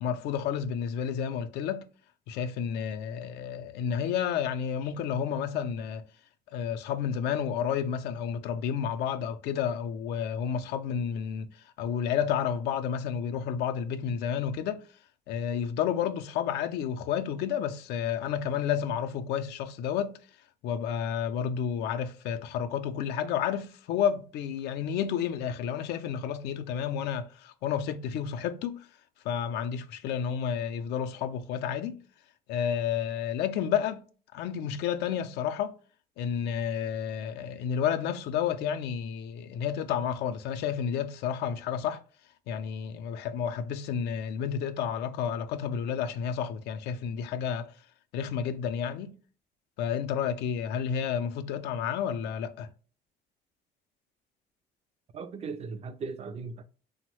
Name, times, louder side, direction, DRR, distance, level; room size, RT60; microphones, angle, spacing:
voice 1, 0.0-1.9 2.3-6.1 6.5-14.8 15.3-20.2 20.6-28.9 29.2-32.0 32.5-34.0 34.3-35.8 36.2-42.0 42.5-47.7 48.1-49.2 49.8-52.7, left 8 dB, 80° left, 0.4 m, -31 dB
voice 2, 55.1-56.6, right 4 dB, 40° right, 0.3 m, -38 dB
3.0 x 2.0 x 3.0 m
cardioid pair, 110°, 17 cm